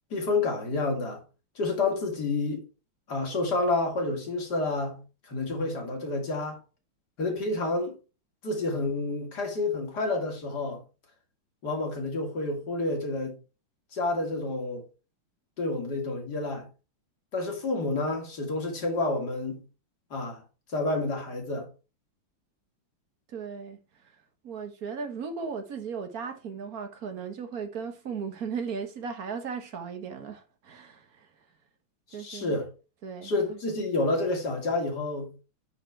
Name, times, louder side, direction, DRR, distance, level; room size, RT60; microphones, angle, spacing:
voice 1, 0.1-1.2 1.6-2.7 3.1-6.6 7.2-8.0 8.4-10.8 11.6-13.4 13.9-14.8 15.6-16.7 17.3-19.6 20.1-20.4 20.7-21.7 32.1-32.7 33.2-35.3, left 2 dB, 50° left, 2.7 m, -29 dB
voice 2, 23.3-23.8 24.4-31.0 32.1-32.5 33.0-33.3, right 6 dB, 50° right, 1.5 m, -36 dB
9.3 x 4.2 x 4.5 m
omnidirectional pair, 2.4 m